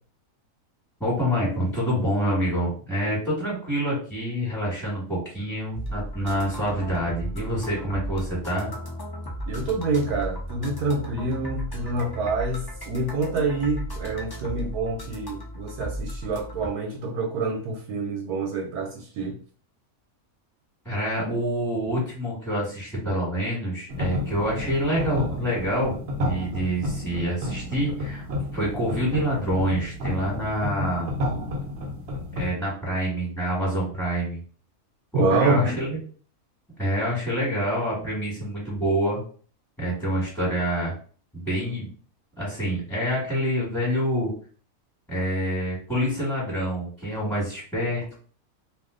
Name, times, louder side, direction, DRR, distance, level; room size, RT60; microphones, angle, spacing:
voice 1, 1.0-8.7 20.8-28.2 28.5-31.1 32.3-34.4 35.1-36.0 36.8-39.2 39.8-40.9 41.3-41.9 42.4-44.3 45.1-48.2, equal, ahead, 1.3 m, -27 dB
sound 1, 5.7-16.7, equal, 30° left, 0.4 m, -35 dB
voice 2, 9.5-19.4 21.2-21.3 35.1-35.7, right 3 dB, 85° right, 1.1 m, -27 dB
sound 2, 23.9-32.5, left 1 dB, 60° right, 0.8 m, -31 dB
2.6 x 2.4 x 3.6 m
omnidirectional pair, 1.6 m